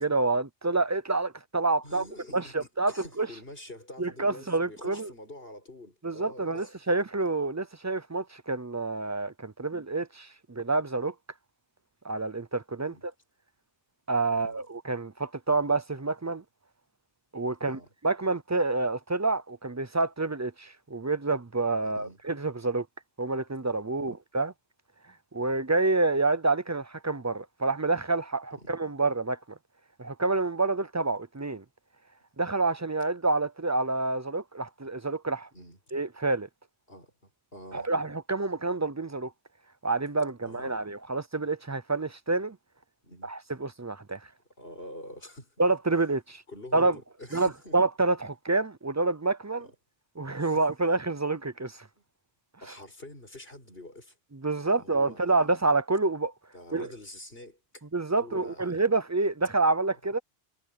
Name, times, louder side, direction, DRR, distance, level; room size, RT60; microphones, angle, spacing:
voice 1, 0.0-2.0 2.3-3.3 4.0-5.1 6.0-11.1 12.0-13.1 14.1-16.4 17.3-22.9 23.2-24.5 25.3-29.4 30.0-31.6 32.4-35.5 35.9-36.5 37.7-39.3 39.8-42.6 43.2-44.2 45.6-46.4 46.7-47.0 47.3-49.7 50.2-51.9 54.4-56.3 56.7-56.9 57.9-60.2, right 3 dB, 25° right, 0.4 m, -28 dB
voice 2, 1.8-6.8 9.6-9.7 12.8-13.1 14.3-14.6 17.6-17.9 21.8-22.2 24.0-24.1 28.6-28.7 35.5-35.8 36.9-37.9 40.4-40.8 43.0-43.3 44.6-45.5 46.5-47.8 50.4-50.6 52.0-52.1 52.6-54.2 54.6-55.5 56.5-57.8 58.1-58.8, left 1 dB, 55° left, 7.1 m, -47 dB
omnidirectional pair, 1.2 m